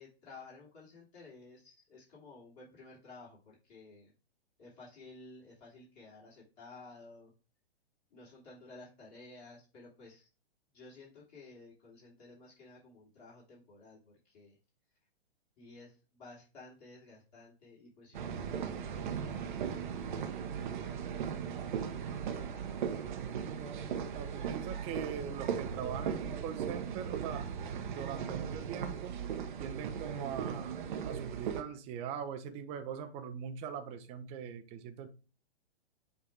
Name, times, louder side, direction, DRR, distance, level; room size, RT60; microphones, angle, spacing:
voice 1, 0.0-4.1 4.6-7.3 8.1-10.3 10.7-14.6 15.6-22.8, left 3 dB, 40° left, -6 dB, 2.9 m, -54 dB
sound 1, 18.1-31.6, right 7 dB, 50° right, 0.8 m, -38 dB
voice 2, 24.1-29.1 29.6-35.1, right 7 dB, 20° right, 7 dB, 0.6 m, -42 dB
7.6 x 2.7 x 4.5 m, 0.33 s
figure-of-eight pair, 115°, 32 cm